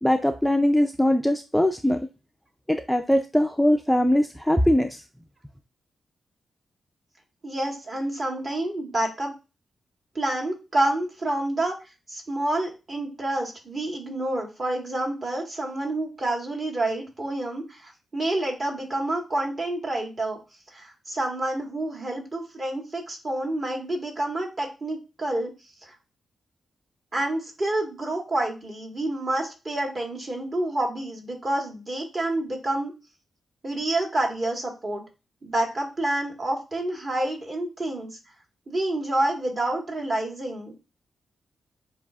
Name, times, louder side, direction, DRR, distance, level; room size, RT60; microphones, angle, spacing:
voice 1, 0.0-2.0 2.7-5.0, left 1 dB, ahead, 5 dB, 0.3 m, -21 dB
voice 2, 7.4-9.3 10.1-11.7 12.1-20.4 20.7-25.5 27.1-32.9 33.6-35.0 35.4-38.2 38.7-40.7, right 1 dB, 40° right, 1 dB, 1.4 m, -28 dB
7.1 x 2.5 x 2.3 m, 0.28 s
cardioid pair, 100°, 0 cm